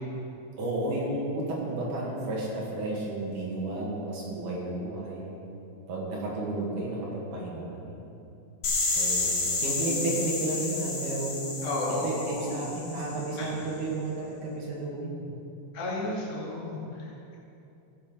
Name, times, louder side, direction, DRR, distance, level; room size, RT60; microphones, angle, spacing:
voice 1, 0.6-5.3 5.9-8.0 9.0-11.6 11.9-15.3, right 2 dB, 55° right, -4 dB, 2.9 m, -32 dB
sound 1, 8.6-13.4, left 3 dB, 75° left, 1.3 m, -31 dB
voice 2, 11.6-12.6 13.4-13.5 15.7-17.4, left 1 dB, 40° left, -5 dB, 3.0 m, -33 dB
15.0 x 7.1 x 5.4 m, 2.7 s
omnidirectional pair, 5.1 m